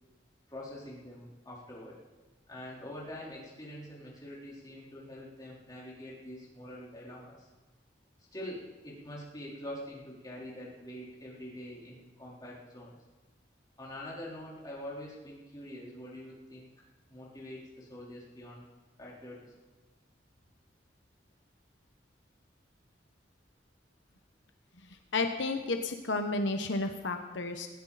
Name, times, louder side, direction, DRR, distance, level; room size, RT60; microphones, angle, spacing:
voice 1, 0.5-2.0 2.5-7.5 8.3-13.0 13.8-16.7 17.1-18.6 19.0-19.5, left 1 dB, 20° left, -5 dB, 4.1 m, -45 dB
voice 2, 25.1-27.7, left 3 dB, 80° left, 6 dB, 1.1 m, -32 dB
19.5 x 16.5 x 4.2 m, 1.2 s
head